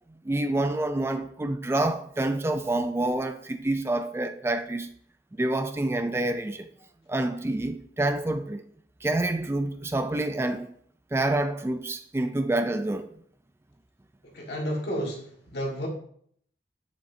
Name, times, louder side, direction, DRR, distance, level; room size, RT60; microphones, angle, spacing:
voice 1, 0.2-4.9 5.4-6.7 7.1-8.6 9.0-10.7 11.1-13.1, right 2 dB, 15° right, 0.3 m, -27 dB
voice 2, 14.3-15.9, equal, 65° left, 1.8 m, -31 dB
8.1 x 7.3 x 2.7 m
head